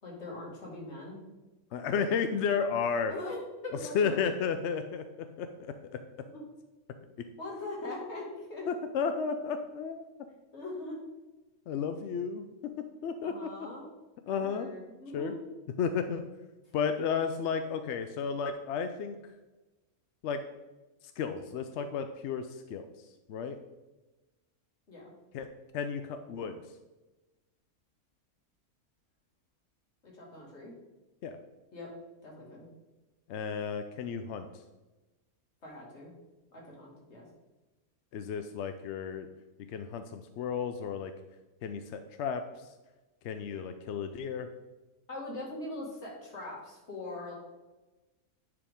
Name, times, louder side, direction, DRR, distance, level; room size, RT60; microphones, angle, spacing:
voice 1, 0.0-1.2 3.1-4.2 6.3-6.4 7.4-8.7 10.5-11.0 13.2-13.9 14.3-15.3 24.9-25.1 30.0-30.7 31.7-31.9 32.2-32.7 35.6-36.1 36.5-37.3 45.1-47.3, left 2 dB, 50° left, -3 dB, 2.4 m, -41 dB
voice 2, 1.7-3.1 3.9-6.0 7.2-7.3 8.7-10.1 11.7-13.5 14.3-14.7 15.1-15.3 15.8-16.2 16.7-19.2 20.2-20.4 21.2-22.9 23.3-23.6 25.3-25.5 25.7-26.6 31.2-31.4 33.3-34.5 38.1-39.3 39.7-41.1 41.6-42.7 43.2-44.5, left 6 dB, 65° left, 8 dB, 0.7 m, -33 dB
10.0 x 5.0 x 3.6 m, 1.1 s
omnidirectional pair, 1.6 m